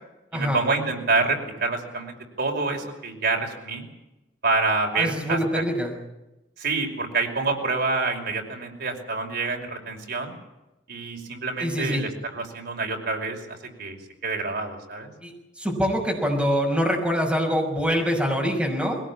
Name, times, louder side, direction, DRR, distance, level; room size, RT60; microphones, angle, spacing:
voice 1, 0.3-3.8 4.4-5.6 6.6-10.3 10.9-15.1, right 3 dB, 60° right, 2 dB, 5.4 m, -27 dB
voice 2, 4.9-5.9 11.6-12.0 15.2-15.3 15.6-19.0, equal, 5° right, 0 dB, 6.1 m, -24 dB
21.5 x 18.0 x 8.7 m, 0.97 s
head